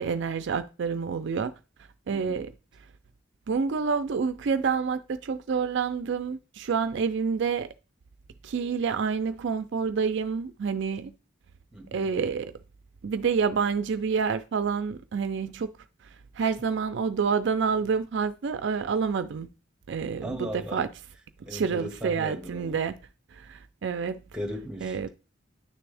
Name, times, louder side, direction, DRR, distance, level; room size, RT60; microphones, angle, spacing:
voice 1, 0.0-1.5 2.1-2.5 3.5-7.7 8.4-11.1 11.9-12.6 13.0-15.7 16.4-19.5 19.9-20.9 21.5-23.0 23.3-24.2 24.8-25.1, right 5 dB, 65° right, 0.4 m, -28 dB
voice 2, 2.1-2.4 11.7-12.1 20.2-20.9 21.5-22.8 24.3-25.1, equal, 5° right, 1.3 m, -37 dB
9.6 x 3.4 x 3.3 m
head